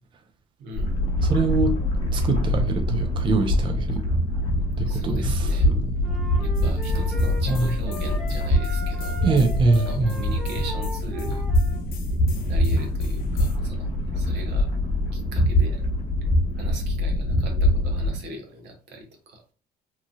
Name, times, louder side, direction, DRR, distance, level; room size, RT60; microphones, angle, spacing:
voice 1, 0.6-1.0 4.8-5.7 6.4-9.2 9.7-11.4 12.4-14.7 15.1-15.8 16.2-16.3 16.5-19.4, right 1 dB, 85° right, 0.9 m, -40 dB
sound 1, 0.8-18.2, left 1 dB, 35° left, 0.9 m, -24 dB
voice 2, 1.2-1.8 2.1-4.0 4.8-5.9 7.5-7.7 9.2-10.1, right 3 dB, 30° right, 0.4 m, -24 dB
sound 2, 6.0-11.8, equal, ahead, 0.9 m, -38 dB
sound 3, 6.5-13.6, equal, 60° left, 0.6 m, -41 dB
3.0 x 2.5 x 2.2 m
cardioid pair, 110°, 17 cm